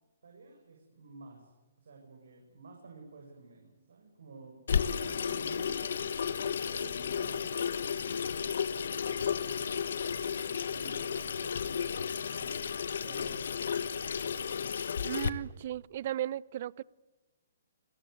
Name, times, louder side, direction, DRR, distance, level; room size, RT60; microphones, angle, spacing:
voice 1, 0.2-1.5 1.8-6.1 6.7-13.5 14.2-15.6, right 4 dB, 75° right, 2 dB, 7.1 m, -52 dB
Water tap faucet / Sink (filling or washing), 4.7-15.3, left 7 dB, 70° left, 1.5 m, -33 dB
sound 1, 6.6-7.4, left 8 dB, 40° left, 3.9 m, -56 dB
voice 2, 15.0-16.8, right 12 dB, 50° right, 23 dB, 0.8 m, -36 dB
29.0 x 18.5 x 9.5 m, 1.1 s
hypercardioid pair, 145°, 0 cm